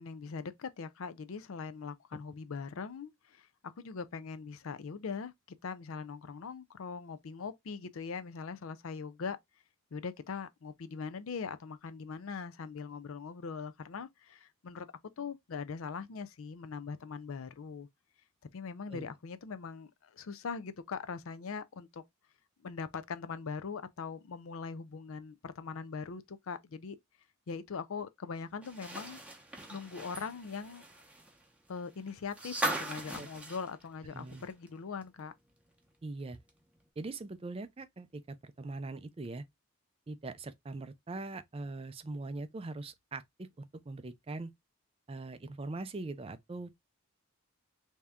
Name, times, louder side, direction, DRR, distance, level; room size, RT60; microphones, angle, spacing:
voice 1, 0.0-3.5 3.8-5.3 5.6-9.4 9.9-14.9 15.2-17.9 18.5-22.0 22.6-27.0 27.5-29.2 29.7-30.9 31.7-35.3, left 5 dB, 70° left, 0.5 m, -41 dB
sound 1, 28.6-34.7 35.0-35.1 36.5-36.6, right 1 dB, 5° right, 0.7 m, -39 dB
voice 2, 34.1-34.4 36.0-36.4 37.0-39.4 40.1-44.5 45.1-46.8, right 2 dB, 25° right, 0.4 m, -42 dB
3.5 x 2.8 x 3.4 m
head